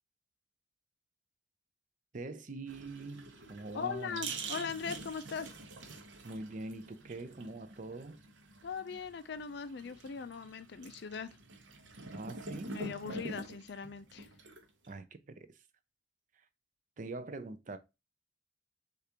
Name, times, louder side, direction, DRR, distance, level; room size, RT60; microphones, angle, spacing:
voice 1, 2.1-4.3 6.2-8.2 12.1-12.8 14.9-15.6 17.0-17.8, right 2 dB, 40° right, 0.5 m, -43 dB
sound 1, 2.7-14.9, right 3 dB, 65° right, 0.9 m, -46 dB
voice 2, 3.7-5.5 8.6-11.3 12.7-14.3, left 5 dB, 55° left, 0.4 m, -40 dB
6.6 x 2.5 x 2.8 m
head